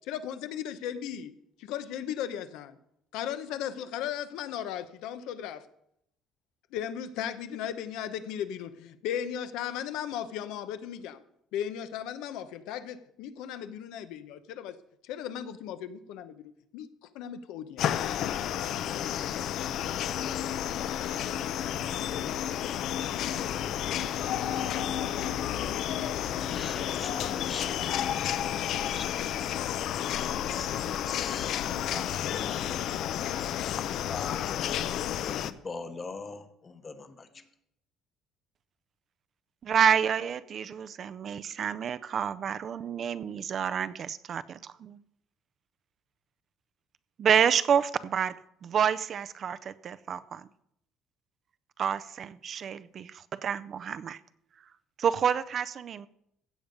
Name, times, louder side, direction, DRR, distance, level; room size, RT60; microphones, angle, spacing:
voice 1, 0.1-1.3 1.6-2.8 3.1-5.7 6.7-11.2 11.5-14.8 15.0-16.4 16.7-18.2, left 9 dB, 85° left, 11 dB, 0.8 m, -36 dB
sound 1, 17.8-35.5, left 10 dB, 60° left, 0.5 m, -31 dB
voice 2, 26.5-28.5 28.9-29.0 30.5-32.7 34.1-34.9 35.3-37.4, left 4 dB, 25° left, 10 dB, 1.0 m, -42 dB
voice 3, 39.6-45.0 47.2-48.4 48.6-50.5 51.8-54.2 55.0-56.1, right 8 dB, 40° right, 14 dB, 0.5 m, -28 dB
16.0 x 7.1 x 5.2 m, 0.75 s
cardioid pair, 145°, 0 cm